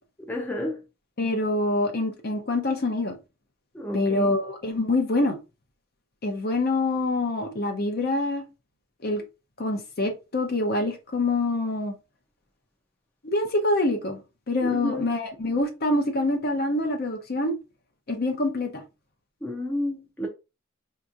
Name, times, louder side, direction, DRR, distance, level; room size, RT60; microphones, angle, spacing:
voice 1, 0.3-0.8 3.7-4.3 14.6-15.1 19.4-20.3, left 1 dB, 10° left, 0.6 m, -30 dB
voice 2, 1.2-3.2 3.9-5.4 6.2-8.4 9.0-9.2 9.6-11.9 13.2-14.2 14.5-17.5 18.1-18.8, left 2 dB, 50° left, 0.7 m, -25 dB
4.5 x 2.9 x 2.5 m
head